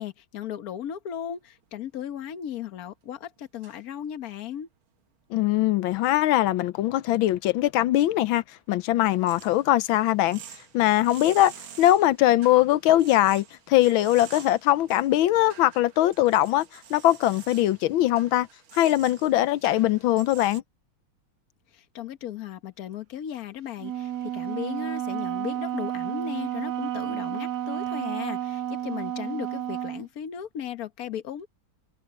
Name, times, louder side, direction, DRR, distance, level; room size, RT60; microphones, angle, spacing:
voice 1, 0.0-4.7 21.7-31.5, left 9 dB, 50° left, 1.5 m, -36 dB
sound 1, 1.6-1.7 3.6-3.8 4.3-4.4 9.1-20.6, right 9 dB, 85° right, 2.4 m, -48 dB
voice 2, 5.3-10.4 10.7-11.5 11.8-18.5 18.7-20.6, left 14 dB, 80° left, 1.4 m, -21 dB
Wind instrument woodwind instrument, 23.8-30.1, right 11 dB, 65° right, 1.1 m, -31 dB
omnidirectional pair, 2.2 m